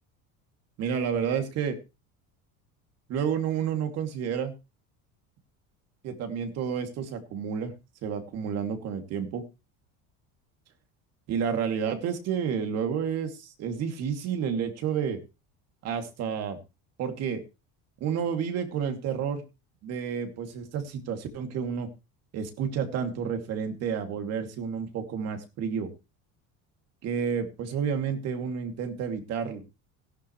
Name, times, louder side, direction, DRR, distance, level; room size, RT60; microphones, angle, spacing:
voice 1, 0.8-1.8 3.1-4.5 6.0-7.7 8.0-9.4 11.3-15.2 15.8-16.6 17.0-17.4 18.0-19.4 19.8-21.9 22.3-25.9 27.0-29.6, right 7 dB, 45° right, 6 dB, 2.7 m, -30 dB
16.5 x 11.5 x 3.2 m, 0.28 s
cardioid pair, 170°, 35 cm